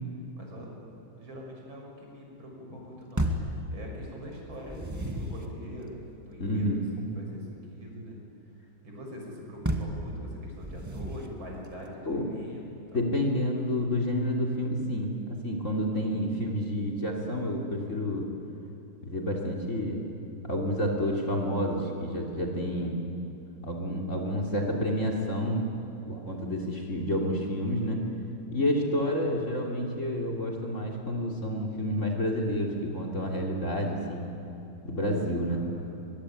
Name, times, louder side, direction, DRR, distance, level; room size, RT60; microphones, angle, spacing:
voice 1, 0.4-0.7 0.9-6.8 7.2-8.2 8.8-13.0 35.4-36.0, equal, 65° right, -1 dB, 6.9 m, -43 dB
sound 1, 3.2-3.6 4.5-5.5 9.6-10.0 10.6-11.4, right 1 dB, 10° right, 1.7 m, -31 dB
voice 2, 6.4-6.8 12.1-12.2 12.9-18.3 19.0-20.0 20.4-23.0 23.6-25.6 26.1-28.1 28.5-34.3 34.8-35.7, equal, 35° left, 1 dB, 3.4 m, -29 dB
23.5 x 22.5 x 9.9 m, 2.9 s
omnidirectional pair, 2.3 m